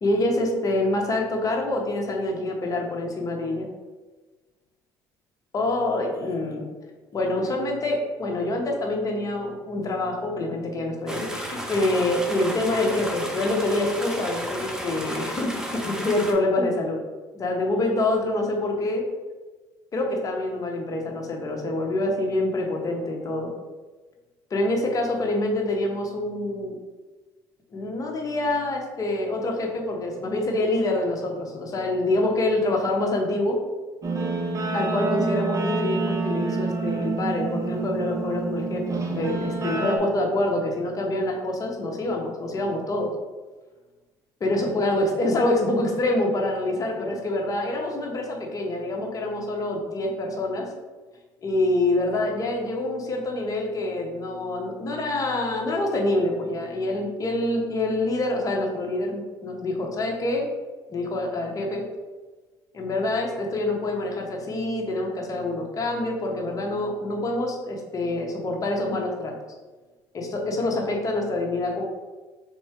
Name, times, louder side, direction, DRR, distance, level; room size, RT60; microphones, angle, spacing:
voice 1, 0.0-3.7 5.5-6.6 7.1-17.0 17.3-19.0 19.9-23.5 24.5-26.8 27.7-33.6 34.7-43.1 44.4-50.7 51.4-60.5 60.9-61.8 62.7-69.3 70.1-71.8, left 2 dB, 40° left, 0 dB, 1.1 m, -26 dB
sound 1, 11.1-16.3, equal, 5° right, 0.8 m, -33 dB
Guitar, 34.0-40.0, right 3 dB, 35° right, 0.7 m, -27 dB
3.7 x 3.0 x 4.6 m, 1.3 s
supercardioid pair, 80°, 9 cm